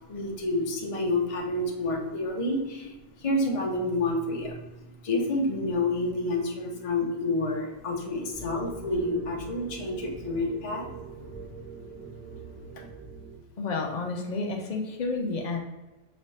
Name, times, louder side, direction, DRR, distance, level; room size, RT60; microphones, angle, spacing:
voice 1, 0.0-4.7 5.0-10.9 11.2-11.4 11.7-11.8 12.3-12.4 12.7-12.9, left 2 dB, 30° left, -1 dB, 0.6 m, -29 dB
sound 1, 8.3-13.4, right 4 dB, 5° right, 1.3 m, -43 dB
voice 2, 13.6-15.6, left 3 dB, 75° left, 1 dB, 0.4 m, -31 dB
5.0 x 2.8 x 3.2 m, 1.1 s
omnidirectional pair, 1.6 m